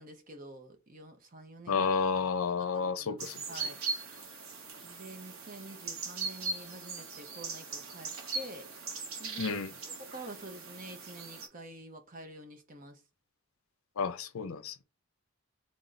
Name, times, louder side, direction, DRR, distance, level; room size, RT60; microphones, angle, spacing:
voice 1, 0.0-1.9 2.7-3.8 4.8-8.7 9.2-9.6 10.1-13.0, right 2 dB, 40° right, 0.8 m, -48 dB
voice 2, 1.7-3.6 9.4-9.7 14.0-14.8, left 5 dB, 80° left, 0.5 m, -31 dB
sound 1, 3.2-11.5, right 4 dB, 75° right, 1.0 m, -40 dB
3.6 x 2.6 x 4.0 m
head